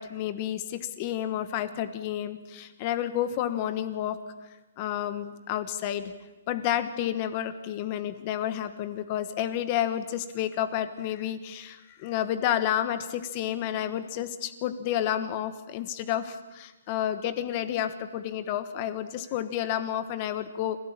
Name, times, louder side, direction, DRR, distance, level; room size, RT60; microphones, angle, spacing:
voice 1, 0.0-4.2 4.8-6.1 6.5-20.8, left 11 dB, 25° left, 10 dB, 1.3 m, -30 dB
26.0 x 16.5 x 8.8 m, 1.1 s
hypercardioid pair, 175°, 0 cm